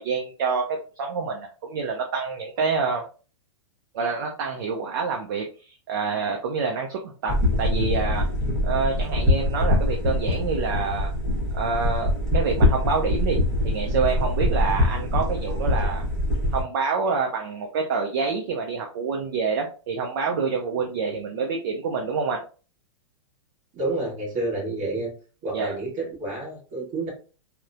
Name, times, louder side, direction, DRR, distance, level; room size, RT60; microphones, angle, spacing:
voice 1, 0.0-3.0 3.9-7.3 7.6-8.3 8.6-11.1 11.5-16.0 16.5-22.4 25.5-25.7, right 5 dB, 40° right, 2 dB, 0.4 m, -27 dB
sound 1, 7.3-16.6, left 1 dB, ahead, 0.9 m, -23 dB
voice 2, 23.7-25.1 25.4-27.1, right 2 dB, 25° right, -4 dB, 1.1 m, -29 dB
2.9 x 2.0 x 2.4 m, 0.37 s
supercardioid pair, 170°, 17 cm